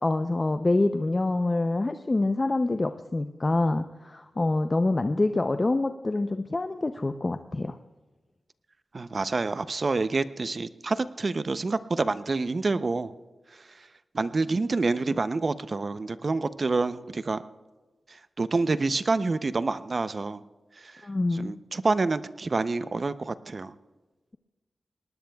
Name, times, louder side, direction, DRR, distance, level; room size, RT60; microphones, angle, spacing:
voice 1, 0.0-7.8 21.0-21.6, left 2 dB, 35° left, 8 dB, 0.6 m, -26 dB
voice 2, 8.9-13.1 14.1-17.4 18.1-20.4 20.8-21.0 21.3-23.7, right 3 dB, 50° right, 13 dB, 0.6 m, -27 dB
20.5 x 19.0 x 2.3 m, 1.2 s
cardioid pair, 55°, 0 cm